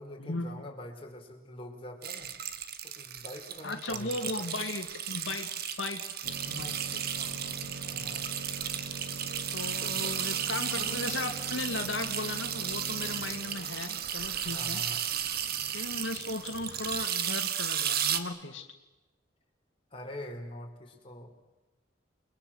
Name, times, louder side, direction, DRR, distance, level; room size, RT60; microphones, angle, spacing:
voice 1, 0.0-2.3 2.8-4.4 7.8-8.3 9.7-10.1 10.5-10.6 14.4-15.1 19.9-21.4, left 1 dB, 30° left, 2 dB, 5.3 m, -44 dB
sound 1, 2.0-18.2, right 9 dB, 55° right, 1.9 m, -34 dB
voice 2, 3.6-5.5 5.8-7.6 9.5-14.8 15.7-18.7, left 2 dB, 90° left, 5 dB, 2.2 m, -37 dB
sound 2, 6.2-17.0, right 2 dB, 85° right, 1.3 m, -44 dB
30.0 x 23.0 x 8.0 m, 1.0 s
head